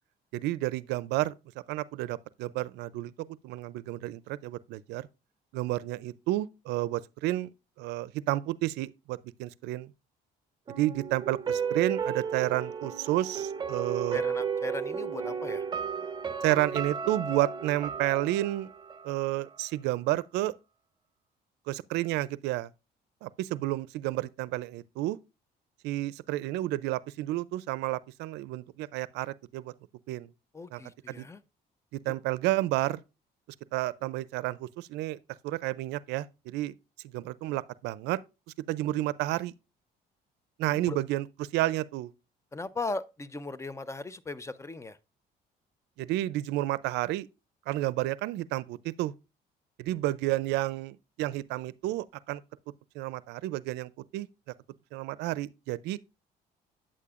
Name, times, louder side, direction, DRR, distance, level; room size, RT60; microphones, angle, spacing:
voice 1, 0.3-1.3 1.7-3.1 3.4-5.1 5.5-7.5 7.8-9.9 10.8-14.2 16.4-18.7 19.0-20.5 21.7-22.7 23.2-25.2 25.8-29.7 30.1-30.3 30.7-30.8 31.1-31.3 31.9-33.0 33.7-35.2 35.4-36.7 37.1-38.2 38.7-39.5 40.6-42.1 46.0-47.3 47.7-49.1 49.8-52.4 53.0-54.3 54.9-56.0, right 16 dB, 85° right, 0.4 m, -31 dB
sound 1, 10.7-19.7 20.0-20.1, right 6 dB, 25° right, 0.9 m, -34 dB
voice 2, 14.1-15.7 30.5-31.4 40.7-41.0 42.5-45.0, left 3 dB, 15° left, 0.5 m, -38 dB
8.7 x 8.5 x 2.4 m
cardioid pair, 110°, 17 cm